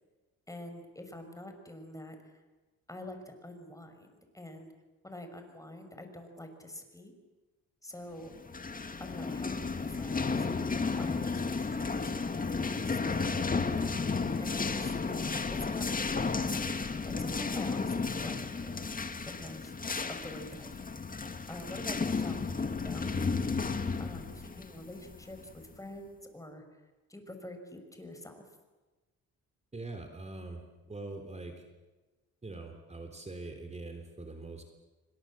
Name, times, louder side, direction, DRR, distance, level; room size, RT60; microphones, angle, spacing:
voice 1, 0.5-2.3 2.9-4.7 5.0-7.2 7.8-8.3 9.0-10.5 10.7-13.7 14.4-14.9 15.5-19.8 20.1-21.2 21.5-23.6 24.0-26.6 27.1-28.5, left 1 dB, 10° left, 6 dB, 5.7 m, -46 dB
sound 1, 8.4-25.8, left 4 dB, 30° left, 2.1 m, -33 dB
voice 2, 29.7-31.5 32.4-34.6, right 2 dB, 20° right, 5 dB, 3.6 m, -43 dB
28.5 x 25.5 x 7.7 m, 1.2 s
cardioid pair, 90°, 30 cm